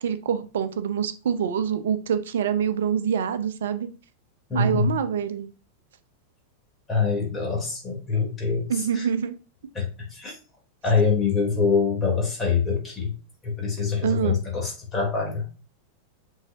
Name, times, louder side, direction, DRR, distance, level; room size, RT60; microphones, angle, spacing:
voice 1, 0.0-3.9 4.5-5.5 8.7-9.4 14.0-14.4, right 8 dB, 60° right, 11 dB, 0.8 m, -25 dB
voice 2, 4.5-4.9 6.9-8.7 8.9-9.1 9.8-10.4 10.8-13.1 13.4-15.4, left 5 dB, 20° left, -2 dB, 3.6 m, -24 dB
7.8 x 5.7 x 2.8 m, 0.34 s
figure-of-eight pair, 90°, 0 cm